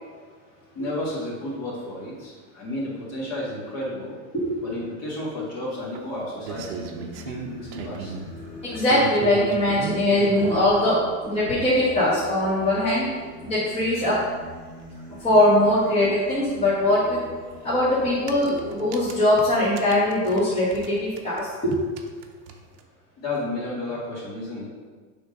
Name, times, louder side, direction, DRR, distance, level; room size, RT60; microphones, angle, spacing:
voice 1, 0.7-4.1 4.6-6.9 7.2-8.1 23.2-24.7, left 1 dB, 35° left, -5 dB, 1.9 m, -32 dB
sound 1, 5.9-8.3 8.7-10.6 11.6-11.7 12.1-12.2 12.4-12.5 12.7-12.8 14.8-14.9 15.2-15.3 17.2-17.4 18.1-20.9 21.2-22.8, right 7 dB, 55° right, 0.7 m, -36 dB
Singing, 6.4-19.1, equal, 5° right, 1.8 m, -41 dB
voice 2, 8.6-13.1 13.4-14.2 15.2-17.2 17.6-21.7, left 1 dB, 15° left, -10 dB, 1.2 m, -21 dB
5.9 x 3.8 x 5.2 m, 1.5 s
supercardioid pair, 175°, 43 cm